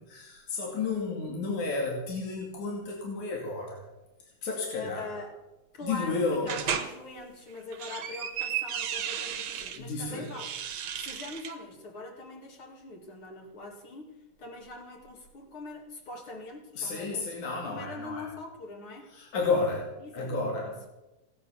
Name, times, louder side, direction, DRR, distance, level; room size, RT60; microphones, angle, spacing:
voice 1, 0.0-3.8 4.4-5.1 5.8-6.5 9.8-10.3 16.8-18.3 19.1-19.9 20.1-20.9, left 3 dB, 85° left, -1 dB, 4.0 m, -32 dB
voice 2, 4.7-5.4 5.7-10.5 10.9-14.1 14.4-19.1 20.0-20.4 20.6-20.9, left 2 dB, 45° left, 3 dB, 3.2 m, -43 dB
sound 1, 6.5-6.9 7.6-9.8 10.3-11.5, right 8 dB, 70° right, 2.4 m, -34 dB
17.0 x 10.5 x 7.1 m, 1.0 s
omnidirectional pair, 3.3 m